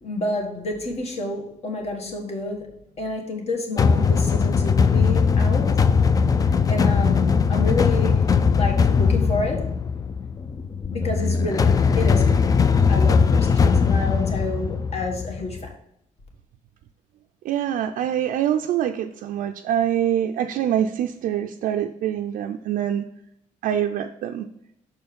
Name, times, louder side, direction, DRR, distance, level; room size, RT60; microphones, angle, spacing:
voice 1, 0.0-5.9 6.7-8.3 8.5-9.7 10.9-12.4 12.9-15.7, left 2 dB, 50° left, 1.6 m, -29 dB
sound 1, 3.8-15.7, left 5 dB, 25° left, 0.3 m, -20 dB
voice 2, 17.4-23.0 23.6-24.5, right 10 dB, 75° right, 0.4 m, -25 dB
6.1 x 4.4 x 5.1 m
cardioid pair, 125°, 14 cm